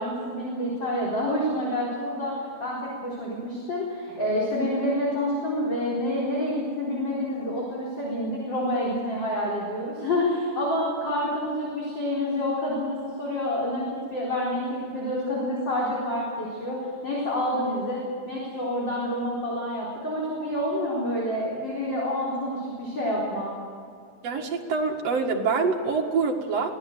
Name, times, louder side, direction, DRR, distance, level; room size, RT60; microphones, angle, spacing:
voice 1, 0.0-23.5, left 1 dB, 35° left, -5 dB, 4.6 m, -28 dB
voice 2, 24.2-26.7, right 4 dB, 55° right, 1 dB, 2.9 m, -25 dB
23.5 x 17.0 x 7.9 m, 2.3 s
omnidirectional pair, 3.7 m